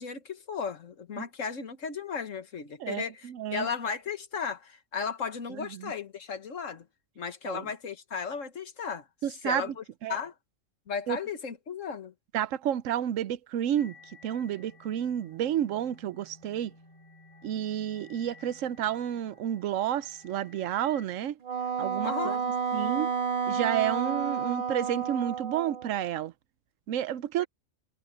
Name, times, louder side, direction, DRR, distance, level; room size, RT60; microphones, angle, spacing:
voice 1, 0.0-6.9 7.2-9.1 9.4-9.8 10.1-10.3 10.9-12.1 22.0-22.4 27.4-27.5, left 6 dB, 85° left, 1.8 m, -35 dB
voice 2, 2.8-3.7 5.5-5.9 7.5-7.7 9.2-9.7 10.0-10.2 11.1-11.2 12.3-14.0 14.2-16.7 17.4-21.4 21.8-23.1 23.5-26.3 26.9-27.5, right 10 dB, 85° right, 1.0 m, -31 dB
sound 1, 13.8-21.0, left 3 dB, 25° left, 6.4 m, -55 dB
Wind instrument woodwind instrument, 21.4-25.9, right 6 dB, 45° right, 1.5 m, -30 dB
omnidirectional pair, 1.3 m